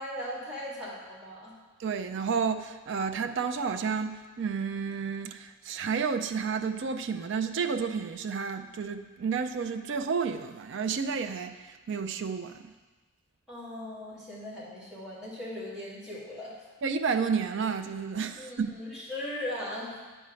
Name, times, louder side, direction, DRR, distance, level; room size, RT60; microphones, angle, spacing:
voice 1, 0.0-1.5 13.5-16.7 18.4-20.0, left 1 dB, 5° right, -10 dB, 2.5 m, -38 dB
voice 2, 1.8-12.7 16.8-18.7, right 5 dB, 55° right, 7 dB, 0.4 m, -31 dB
9.1 x 4.4 x 6.2 m, 1.3 s
head